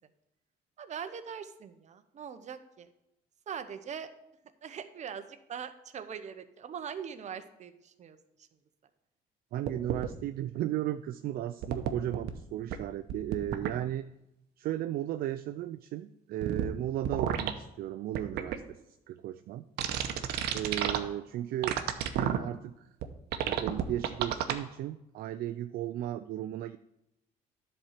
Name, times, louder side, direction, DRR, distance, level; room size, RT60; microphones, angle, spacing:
voice 1, 0.8-2.9 3.5-4.1 4.6-8.5, right 7 dB, 45° right, 10 dB, 0.8 m, -42 dB
voice 2, 9.5-14.1 14.6-18.6 18.9-19.9 20.5-21.8 22.1-22.9 23.4-26.8, right 12 dB, 60° right, 11 dB, 0.4 m, -35 dB
sound 1, 9.7-10.1 11.6-12.3 12.7-12.8 13.1-13.7 16.4-16.7 17.0-17.5 18.2-18.6 19.8-21.0 21.6-22.4 23.0-23.1 23.3-24.5, right 10 dB, 75° right, 0.8 m, -30 dB
10.5 x 4.4 x 6.5 m, 0.88 s
cardioid pair, 110°, 17 cm